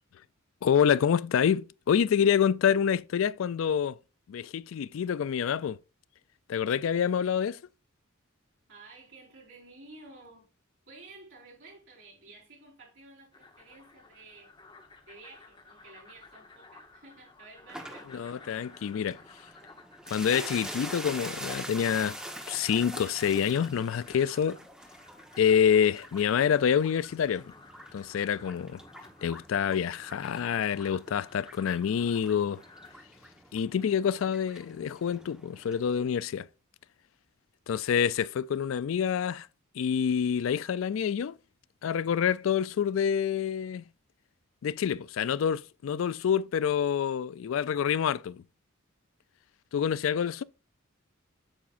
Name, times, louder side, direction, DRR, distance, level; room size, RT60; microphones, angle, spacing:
voice 1, 0.6-4.0 4.3-5.8 6.5-7.6 18.1-19.2 20.1-22.2 22.5-24.6 25.4-27.5 27.9-28.8 29.2-32.6 33.5-36.5 37.7-39.5 39.8-41.4 41.8-43.8 44.6-48.4 49.7-50.4, left 8 dB, 75° left, 0.3 m, -27 dB
voice 2, 8.7-10.5 10.9-14.5 15.0-18.4, right 3 dB, 60° right, 4.9 m, -52 dB
sound 1, 13.3-33.0, left 3 dB, 25° left, 1.0 m, -54 dB
sound 2, 17.7-35.9, equal, 5° right, 1.1 m, -45 dB
8.7 x 7.1 x 2.5 m
head